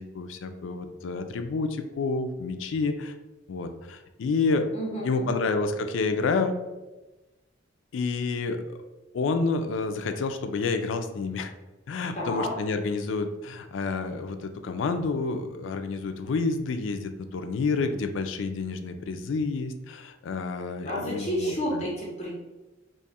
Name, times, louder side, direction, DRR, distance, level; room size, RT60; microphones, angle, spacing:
voice 1, 0.0-3.1 3.5-4.7 5.0-6.6 7.9-8.8 9.1-11.5 11.9-21.8, left 4 dB, 70° left, 8 dB, 0.3 m, -29 dB
voice 2, 4.7-5.4 12.1-12.5 20.8-22.3, equal, 35° left, -4 dB, 0.7 m, -30 dB
2.9 x 2.3 x 4.1 m, 1.1 s
head